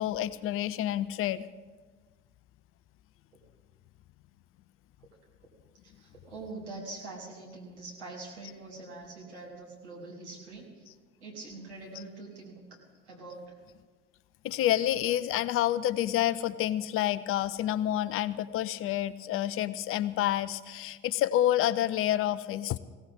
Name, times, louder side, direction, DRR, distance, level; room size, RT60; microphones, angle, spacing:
voice 1, 0.0-1.5 14.4-22.8, left 12 dB, 40° left, 18 dB, 0.5 m, -28 dB
voice 2, 5.8-10.9 11.2-12.8 13.0-13.5, right 3 dB, 75° right, -2 dB, 3.1 m, -44 dB
19.5 x 17.0 x 3.7 m, 1.4 s
figure-of-eight pair, 55°, 34 cm